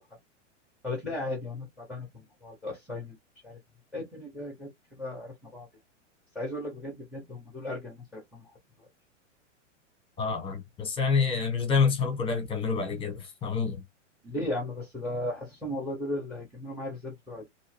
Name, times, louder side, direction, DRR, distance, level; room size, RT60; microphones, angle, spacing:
voice 1, 0.8-3.2 3.4-3.5 3.9-4.7 5.0-5.7 6.3-8.4 14.2-17.5, left 1 dB, ahead, 0.7 m, -36 dB
voice 2, 10.2-13.8, left 5 dB, 15° left, 1.0 m, -27 dB
2.9 x 2.5 x 3.1 m
hypercardioid pair, 140°, 37 cm